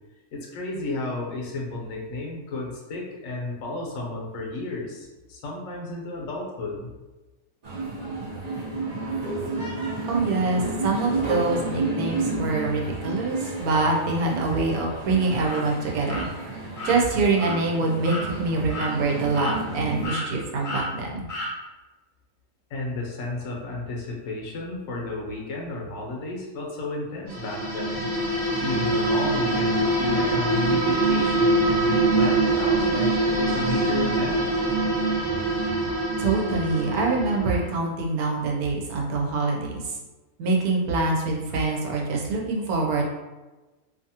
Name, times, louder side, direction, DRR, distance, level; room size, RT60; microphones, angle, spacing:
voice 1, 0.3-6.9 22.7-28.1 28.6-34.5, left 2 dB, 70° left, -1 dB, 1.0 m, -32 dB
sound 1, 7.6-20.1, right 3 dB, 70° right, 0.4 m, -31 dB
voice 2, 10.1-16.3 16.8-21.2 36.2-39.8 40.4-43.0, right 3 dB, 85° right, -1 dB, 1.1 m, -25 dB
sound 2, 15.5-15.6 16.1-16.2 16.7-17.0 17.4-17.5 18.0-18.3 18.7-18.9 19.3-19.8 20.0-20.3 20.6-20.9 21.3-21.5, left 2 dB, 50° left, 0.4 m, -32 dB
sound 3, 27.3-37.7, right 2 dB, 40° right, 1.1 m, -24 dB
2.7 x 2.4 x 2.7 m, 1.1 s
omnidirectional pair, 1.5 m